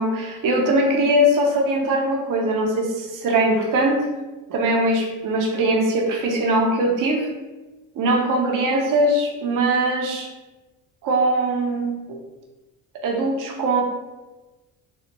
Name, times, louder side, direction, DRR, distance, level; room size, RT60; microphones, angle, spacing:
voice 1, 0.0-4.0 4.5-7.3 8.0-10.3 11.0-12.0 13.0-13.8, right 1 dB, 50° right, 0 dB, 0.8 m, -21 dB
3.2 x 2.0 x 3.0 m, 1.2 s
supercardioid pair, 75°, 41 cm